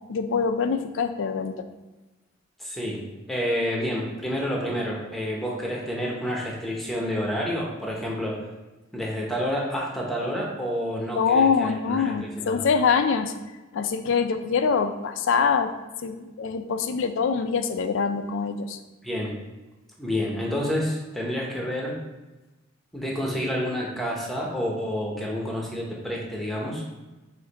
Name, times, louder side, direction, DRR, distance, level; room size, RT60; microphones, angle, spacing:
voice 1, 0.1-1.6 11.2-13.3 13.7-15.7 16.0-18.8, left 5 dB, 65° left, 8 dB, 0.4 m, -24 dB
voice 2, 2.6-3.0 3.3-8.4 8.9-12.6 19.0-19.3 20.0-22.0 22.9-26.9, equal, ahead, -2 dB, 0.8 m, -29 dB
4.8 x 2.6 x 4.0 m, 1.1 s
head